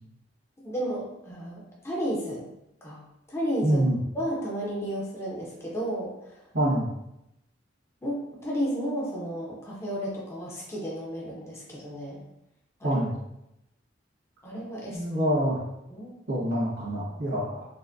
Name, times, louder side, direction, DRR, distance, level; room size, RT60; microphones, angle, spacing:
voice 1, 0.6-2.4 2.8-3.0 3.3-3.8 4.1-6.4 8.0-12.2 12.8-13.0 14.4-15.0 15.9-16.1, equal, 15° left, -5 dB, 0.6 m, -32 dB
voice 2, 3.6-4.0 6.5-6.9 12.8-13.1 14.9-15.6 16.3-17.6, right 1 dB, 65° right, -6 dB, 1.4 m, -26 dB
4.2 x 2.1 x 2.6 m, 0.85 s
head